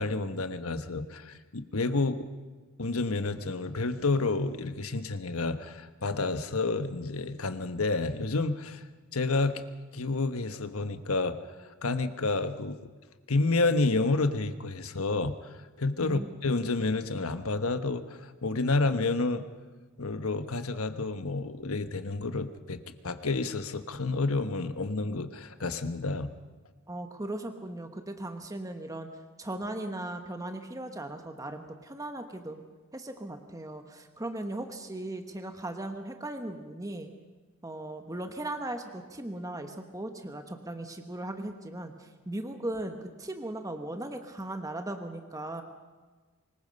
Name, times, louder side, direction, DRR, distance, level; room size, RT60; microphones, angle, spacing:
voice 1, 0.0-2.2 2.8-8.8 9.1-9.6 9.9-11.4 11.8-12.9 13.3-15.3 15.8-19.4 20.0-26.3, left 3 dB, 85° left, 9 dB, 1.2 m, -29 dB
voice 2, 26.9-29.1 29.4-32.6 32.9-37.1 37.6-45.6, right 1 dB, 15° right, 5 dB, 1.2 m, -38 dB
25.0 x 20.5 x 5.4 m, 1.4 s
head